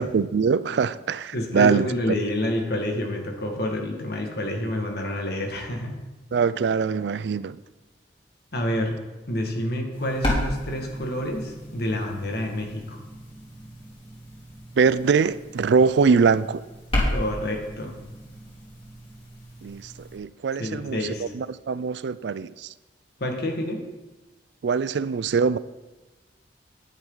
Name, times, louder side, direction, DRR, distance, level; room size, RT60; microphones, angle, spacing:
voice 1, 0.0-1.9 6.3-7.6 14.8-16.6 19.6-22.7 24.6-25.6, right 5 dB, 65° right, 17 dB, 0.4 m, -23 dB
voice 2, 1.3-6.0 8.5-9.0 9.3-13.0 17.1-18.0 20.6-21.2 23.2-23.8, left 1 dB, 60° left, 2 dB, 1.9 m, -28 dB
sound 1, 9.9-20.2, left 1 dB, 30° left, 3.4 m, -33 dB
11.0 x 10.0 x 4.0 m, 1.2 s
head